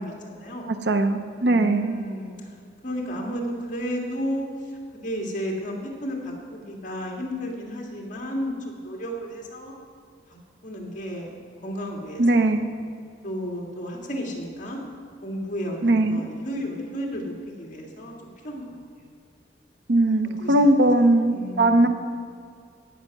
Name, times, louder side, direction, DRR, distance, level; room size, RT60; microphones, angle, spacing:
voice 1, 0.0-0.7 1.4-2.5 2.8-9.7 10.3-11.3 11.6-12.5 13.2-14.8 15.2-18.1 18.4-19.1 20.4-20.7 21.0-21.9, equal, 45° left, 0 dB, 2.2 m, -33 dB
voice 2, 0.9-2.0 12.2-12.7 15.8-16.2 19.9-21.9, right 1 dB, 65° right, 8 dB, 0.8 m, -19 dB
17.0 x 6.6 x 6.0 m, 2.3 s
head